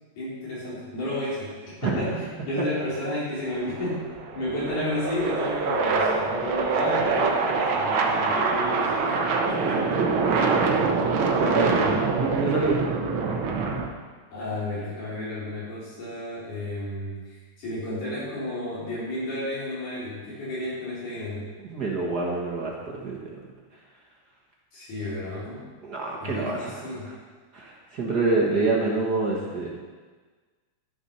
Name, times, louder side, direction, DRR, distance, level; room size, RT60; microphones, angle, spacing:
voice 1, 0.2-4.1 4.3-9.2 9.5-10.4 11.2-12.0 14.3-21.5 24.7-25.6 26.2-27.1, left 1 dB, 90° left, -8 dB, 5.4 m, -32 dB
sound 1, 3.5-13.9, right 4 dB, 65° right, 1.3 m, -25 dB
voice 2, 12.2-12.8 21.6-22.7 23.0-23.3 25.8-27.2 27.5-29.7, right 3 dB, 45° right, -3 dB, 1.5 m, -26 dB
12.0 x 7.0 x 5.7 m, 1.4 s
omnidirectional pair, 3.5 m